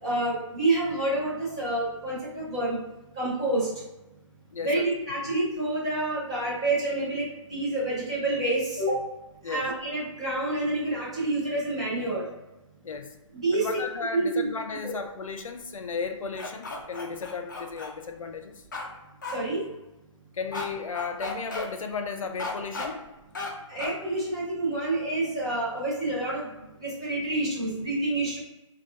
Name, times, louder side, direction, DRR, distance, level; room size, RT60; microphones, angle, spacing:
voice 1, 0.0-2.8 3.1-3.7 4.6-9.0 9.4-12.2 13.3-13.7 14.1-14.5 14.8-14.9 19.3-19.6 23.7-26.5 26.8-28.4, right 2 dB, 10° right, -9 dB, 0.5 m, -28 dB
voice 2, 4.5-4.9 5.3-5.4 9.4-9.7 12.8-13.1 13.5-18.6 20.3-23.1, left 5 dB, 85° left, 6 dB, 0.5 m, -35 dB
sound 1, 16.4-17.9 18.7-18.9 19.2-19.4 20.5-20.7 20.9-21.7 22.4-22.9 23.3-23.5 23.8-24.0, left 3 dB, 35° left, 0.5 m, -34 dB
2.7 x 2.3 x 3.5 m, 0.98 s
hypercardioid pair, 180°, 17 cm